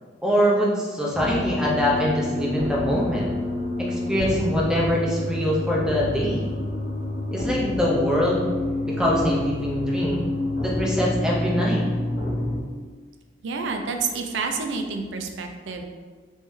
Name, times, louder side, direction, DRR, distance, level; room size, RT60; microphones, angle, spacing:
voice 1, 0.2-3.3 3.8-6.6 7.3-8.5 8.8-10.3 10.6-11.8, equal, 5° right, -5 dB, 0.6 m, -23 dB
sound 1, 1.1-12.6, left 1 dB, 65° left, 0.8 m, -28 dB
voice 2, 13.4-15.8, right 4 dB, 85° right, 4 dB, 0.4 m, -29 dB
3.4 x 3.1 x 3.1 m, 1.5 s
head